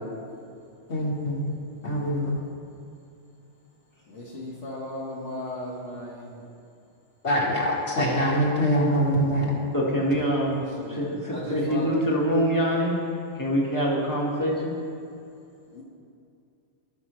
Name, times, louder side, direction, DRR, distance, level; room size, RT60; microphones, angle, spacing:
voice 1, 0.9-1.4 1.8-2.4 7.2-9.5, equal, 65° left, -3 dB, 1.9 m, -24 dB
voice 2, 4.1-6.4 10.8-12.0 15.7-15.8, left 1 dB, 85° left, -7 dB, 1.6 m, -36 dB
voice 3, 9.7-10.6 10.9-12.9 13.4-14.7, equal, 15° left, -4 dB, 1.4 m, -24 dB
16.0 x 6.0 x 3.1 m, 2.5 s
omnidirectional pair, 1.2 m